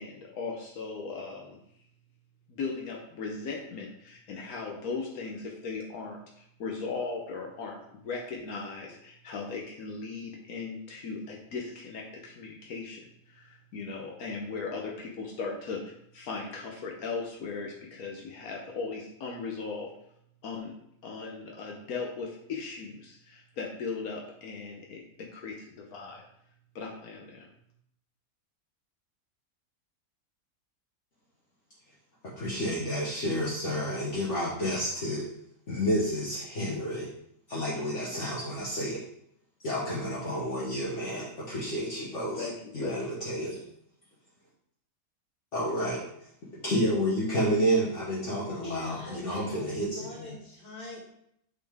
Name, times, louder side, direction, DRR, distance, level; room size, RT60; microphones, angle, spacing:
voice 1, 0.0-1.6 2.5-7.8 8.0-19.9 20.4-20.7 21.0-26.2 26.7-27.5 41.1-41.2 42.4-43.0, left 4 dB, 80° left, 0 dB, 1.3 m, -38 dB
voice 2, 32.2-35.2 35.7-37.1 37.5-39.0 39.6-42.5 42.7-43.6 45.5-46.0 46.6-50.3, equal, 55° left, -6 dB, 1.5 m, -30 dB
voice 3, 48.6-51.0, left 1 dB, 30° left, -4 dB, 2.2 m, -43 dB
8.2 x 4.2 x 3.5 m, 0.73 s
omnidirectional pair, 1.5 m